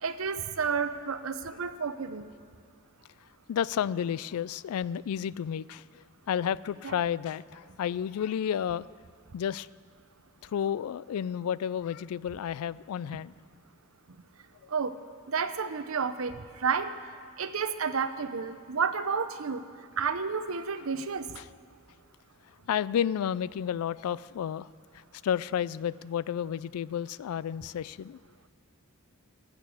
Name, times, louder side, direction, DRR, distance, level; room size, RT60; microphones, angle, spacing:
voice 1, 0.0-2.3 6.8-6.9 14.7-14.9 15.3-16.9 17.4-19.6 20.0-21.3, right 5 dB, 70° right, 11 dB, 0.7 m, -31 dB
voice 2, 3.5-8.9 9.3-9.7 10.4-13.3 21.4-21.5 22.7-24.7 24.9-28.2, left 9 dB, 85° left, 20 dB, 0.3 m, -31 dB
17.0 x 6.7 x 8.4 m, 2.2 s
head